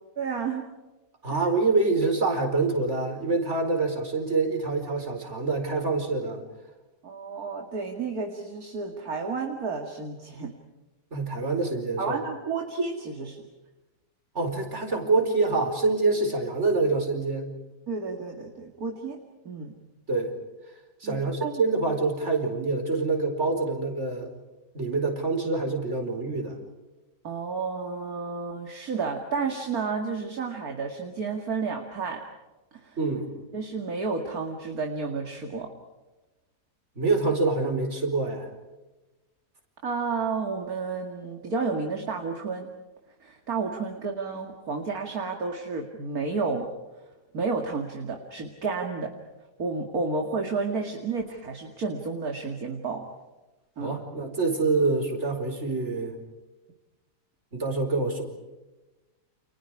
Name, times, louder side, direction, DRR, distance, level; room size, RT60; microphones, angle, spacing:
voice 1, 0.2-0.7 7.0-10.5 12.0-13.4 17.9-19.7 21.0-21.6 27.2-32.2 32.8-33.0 33.5-35.7 39.8-42.7 43.2-46.7 47.3-49.2 49.6-53.1 53.8-54.0, right 4 dB, 60° right, 3 dB, 2.7 m, -31 dB
voice 2, 1.2-6.4 11.1-12.2 14.3-17.5 20.1-20.3 21.0-24.3 24.7-26.6 33.0-33.3 37.0-38.5 53.8-56.2 57.5-58.2, right 3 dB, 40° right, 3 dB, 4.9 m, -26 dB
30.0 x 29.0 x 4.9 m, 1.1 s
omnidirectional pair, 1.8 m